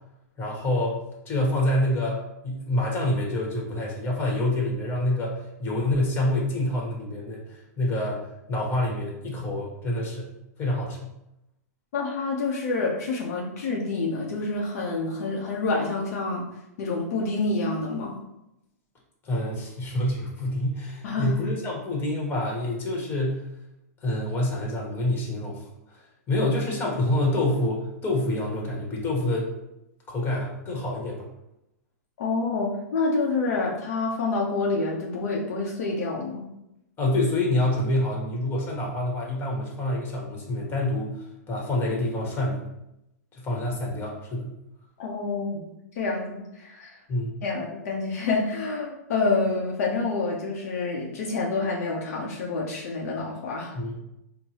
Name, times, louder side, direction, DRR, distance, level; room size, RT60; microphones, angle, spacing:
voice 1, 0.4-1.0 1.2-2.2 2.4-10.3 10.6-11.1 19.2-23.5 24.0-26.0 26.3-29.5 30.1-31.3 37.0-42.6 43.3-44.5 47.1-47.3 53.7-54.0, left 1 dB, 25° left, -2 dB, 1.2 m, -27 dB
voice 2, 11.9-16.5 16.8-18.2 21.0-21.3 32.2-36.5 45.0-47.0 47.4-53.8, left 3 dB, 65° left, -2 dB, 0.7 m, -28 dB
4.6 x 2.2 x 2.9 m, 0.87 s
hypercardioid pair, 125°, 9 cm